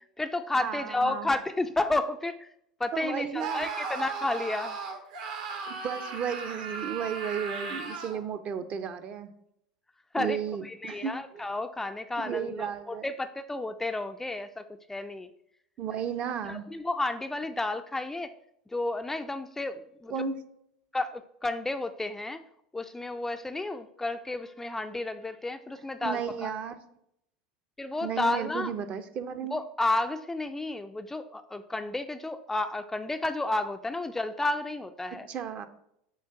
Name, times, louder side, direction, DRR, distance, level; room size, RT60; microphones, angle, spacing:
voice 1, 0.0-2.5 2.8-4.8 10.1-10.4 10.6-15.3 16.5-18.3 18.7-20.1 20.9-22.4 22.7-26.5 27.8-28.7 29.5-35.3, left 2 dB, 10° left, 8 dB, 0.4 m, -32 dB
voice 2, 0.6-1.3 2.9-3.7 5.7-9.3 10.2-11.4 12.2-13.1 15.8-16.7 20.1-20.3 26.0-26.7 28.0-29.6 35.3-35.7, right 7 dB, 40° right, 10 dB, 0.6 m, -34 dB
Screaming, 3.4-8.2, right 5 dB, 65° right, 1.1 m, -36 dB
7.2 x 2.5 x 5.6 m, 0.75 s
figure-of-eight pair, 80°, 4 cm